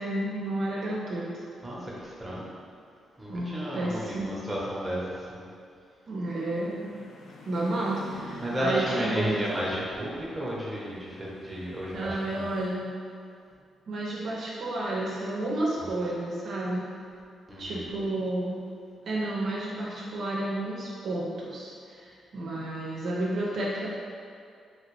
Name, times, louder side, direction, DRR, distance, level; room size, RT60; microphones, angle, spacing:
voice 1, 0.0-1.5 3.3-4.3 6.1-6.9 7.5-9.7 11.9-12.9 13.9-16.8 17.6-18.6 19.1-23.9, right 1 dB, 65° right, -6 dB, 0.6 m, -31 dB
voice 2, 1.6-2.4 3.2-5.0 5.3-5.5 8.4-12.4 15.8-15.9 17.5-17.9, equal, 15° right, -6 dB, 1.0 m, -32 dB
sound 1, 6.3-12.7, left 1 dB, 75° left, 0.5 m, -47 dB
2.9 x 2.8 x 3.1 m, 2.3 s
supercardioid pair, 55°, 0 cm